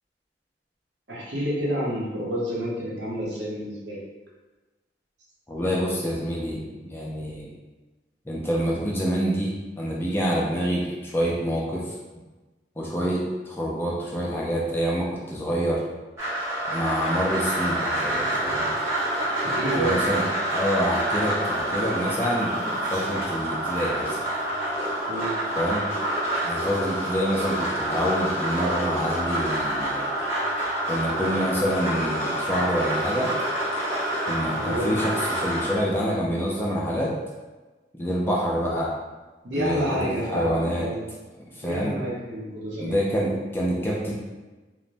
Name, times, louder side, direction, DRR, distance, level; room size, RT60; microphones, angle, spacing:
voice 1, 1.1-4.0 19.4-20.0 25.1-25.4 34.6-34.9 39.4-41.0 41.6-43.0, right 1 dB, 75° right, -5 dB, 0.8 m, -29 dB
voice 2, 5.5-7.5 8.3-11.9 12.8-15.8 16.7-18.7 19.6-20.2 20.5-24.2 25.5-25.8 26.4-30.0 30.9-33.3 34.2-37.1 38.0-38.9 39.5-40.9 41.6-42.0 42.8-44.1, equal, 15° left, -4 dB, 0.4 m, -27 dB
sound 1, 16.2-35.8, right 1 dB, 15° right, 0.8 m, -27 dB
3.1 x 2.1 x 2.5 m, 1.2 s
head